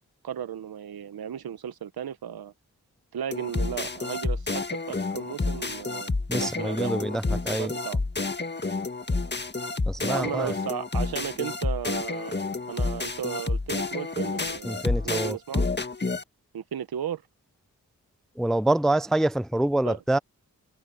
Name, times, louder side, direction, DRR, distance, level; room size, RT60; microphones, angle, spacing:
voice 1, 0.2-2.5 3.1-8.0 10.1-12.4 12.7-15.7 16.5-17.2 19.8-20.0, right 9 dB, 80° right, 1.2 m, -35 dB
sound 1, 3.3-16.2, left 3 dB, 30° left, 1.8 m, -29 dB
voice 2, 6.3-7.7 9.9-10.5 14.6-15.4 18.4-20.2, right 1 dB, ahead, 0.4 m, -26 dB
cardioid pair, 45°, 37 cm